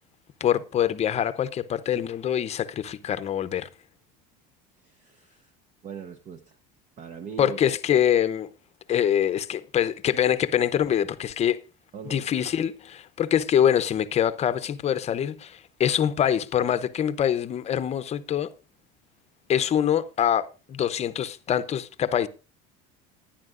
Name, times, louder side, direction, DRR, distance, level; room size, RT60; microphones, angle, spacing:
voice 1, 0.4-3.7 7.4-8.5 8.9-11.6 12.1-18.5 19.5-22.3, left 9 dB, 30° left, 0.7 m, -24 dB
voice 2, 4.8-5.5 5.8-6.6 7.0-7.6 11.9-12.3, right 7 dB, 35° right, 0.9 m, -40 dB
19.0 x 10.0 x 2.5 m
supercardioid pair, 130°, 21 cm